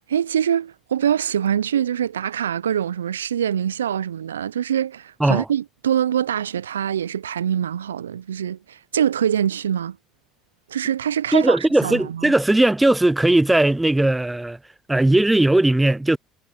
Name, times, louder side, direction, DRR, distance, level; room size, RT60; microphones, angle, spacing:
voice 1, 0.1-10.0 10.7-12.3, right 9 dB, 85° right, 0.4 m, -24 dB
voice 2, 11.3-14.6 14.9-16.2, right 1 dB, 10° right, 0.3 m, -18 dB
figure-of-eight pair, 60°, 0 cm